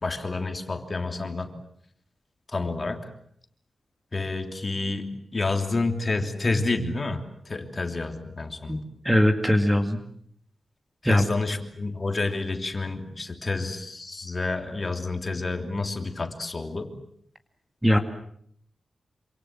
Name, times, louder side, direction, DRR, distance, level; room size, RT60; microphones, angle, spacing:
voice 1, 0.0-1.5 2.5-3.1 4.1-8.8 11.0-16.9, left 3 dB, 35° left, 6 dB, 3.1 m, -29 dB
voice 2, 9.0-10.0 11.0-11.3 17.8-18.0, equal, 5° right, 6 dB, 2.0 m, -20 dB
27.5 x 26.5 x 7.6 m, 0.68 s
wide cardioid pair, 125°, 0 cm